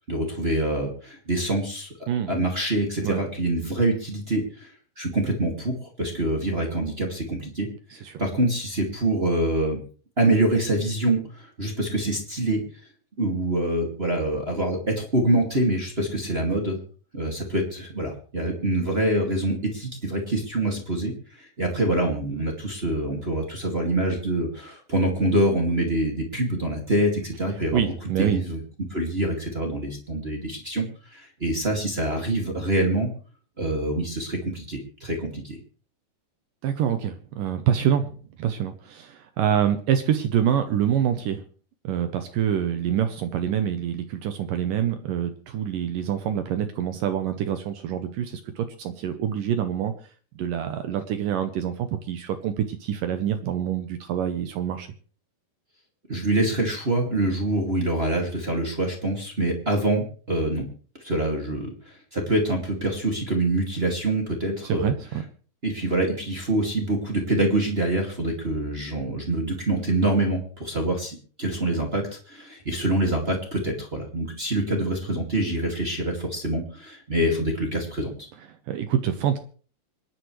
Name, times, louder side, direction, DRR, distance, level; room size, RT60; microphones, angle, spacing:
voice 1, 0.1-1.9 2.3-4.7 5.0-7.7 8.2-9.8 10.2-12.6 13.2-16.8 17.1-21.1 21.4-27.9 28.2-28.6 28.9-30.8 31.1-33.1 33.6-35.6 56.1-60.7 61.0-64.9 65.6-78.3, right 1 dB, 25° right, 0 dB, 1.5 m, -25 dB
voice 2, 27.7-28.4 36.6-38.1 38.4-41.4 41.8-49.9 50.4-54.9 64.6-65.2 78.7-79.4, right 9 dB, 75° right, 9 dB, 2.1 m, -26 dB
26.0 x 10.5 x 3.2 m, 0.41 s
omnidirectional pair, 4.7 m